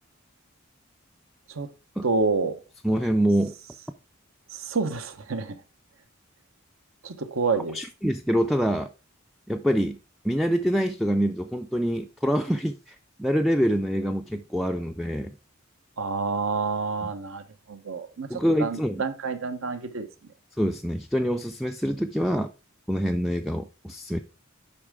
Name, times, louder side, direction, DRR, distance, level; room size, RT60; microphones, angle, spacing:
voice 1, 2.0-2.5 4.5-5.6 7.0-7.8 16.0-17.4 17.7-18.3 18.6-20.1, right 4 dB, 70° right, 0.9 m, -28 dB
voice 2, 2.8-3.5 7.7-8.9 9.5-10.0 10.2-15.3 17.0-17.1 18.3-19.0 20.6-22.5 22.9-24.2, equal, ahead, 0.3 m, -25 dB
8.5 x 5.5 x 3.5 m
head